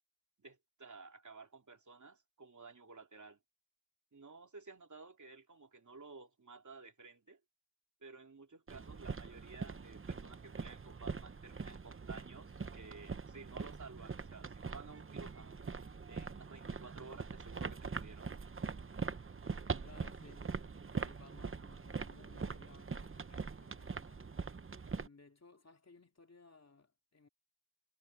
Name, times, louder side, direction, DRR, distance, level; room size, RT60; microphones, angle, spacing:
voice 1, 0.4-3.4 4.1-7.4 8.0-15.6 16.1-18.3, right 4 dB, 45° right, 3.1 m, -54 dB
sound 1, 8.7-25.1, right 5 dB, 30° right, 0.9 m, -43 dB
voice 2, 19.1-20.6 20.9-24.4 24.9-27.3, left 4 dB, 40° left, 2.7 m, -61 dB
wide cardioid pair, 60°, 39 cm